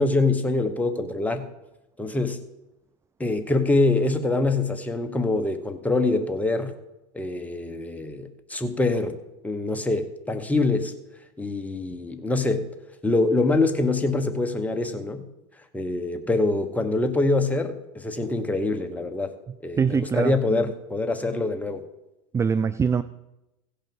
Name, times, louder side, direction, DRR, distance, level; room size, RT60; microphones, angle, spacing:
voice 1, 0.0-1.5 2.0-2.4 3.2-6.7 7.1-9.2 9.4-10.9 11.4-12.7 13.0-15.3 15.7-19.3 19.6-21.8, left 2 dB, 10° left, 6 dB, 1.2 m, -24 dB
voice 2, 19.8-20.7 22.3-23.0, right 6 dB, 15° right, 15 dB, 0.4 m, -23 dB
16.0 x 5.5 x 5.4 m, 0.94 s
hypercardioid pair, 100°, 17 cm